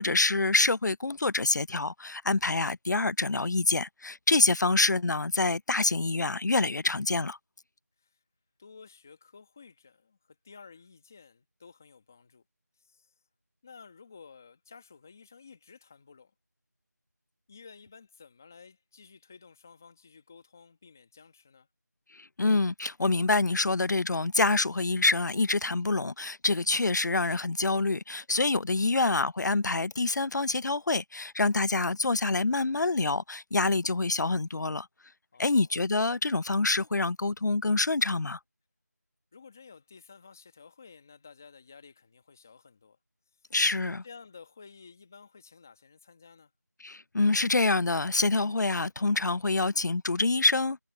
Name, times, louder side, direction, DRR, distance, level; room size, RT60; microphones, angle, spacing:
voice 1, 0.0-7.4 22.1-34.9 35.4-38.4 43.5-44.0 46.8-50.8, left 3 dB, 75° left, 0.4 m, -26 dB
voice 2, 8.6-12.4 12.8-13.1 13.6-16.3 17.5-21.7 28.7-29.1 35.3-35.7 39.3-43.0 43.4-43.5 44.0-46.5, left 5 dB, 10° left, 1.2 m, -53 dB
figure-of-eight pair, 175°, 10 cm